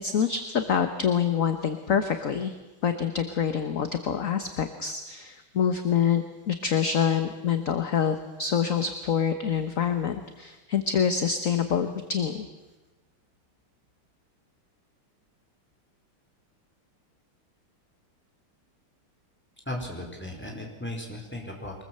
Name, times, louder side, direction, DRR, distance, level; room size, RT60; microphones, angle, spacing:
voice 1, 0.0-2.5 2.8-12.5, left 7 dB, 45° left, 8 dB, 1.4 m, -26 dB
voice 2, 19.7-21.7, left 1 dB, 5° left, 1 dB, 4.4 m, -36 dB
24.0 x 20.5 x 7.8 m, 1.1 s
omnidirectional pair, 2.3 m